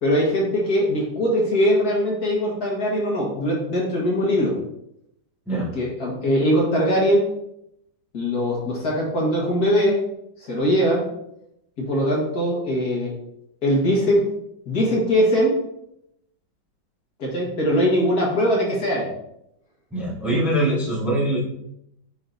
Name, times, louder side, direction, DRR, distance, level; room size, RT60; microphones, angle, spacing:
voice 1, 0.0-4.6 5.5-7.3 8.1-10.0 10.4-11.1 11.8-13.1 13.6-14.3 14.7-15.6 17.2-19.1, equal, 60° left, -3 dB, 1.9 m, -21 dB
voice 2, 19.9-21.4, right 1 dB, ahead, -5 dB, 1.3 m, -23 dB
9.0 x 4.1 x 2.6 m, 0.81 s
omnidirectional pair, 1.9 m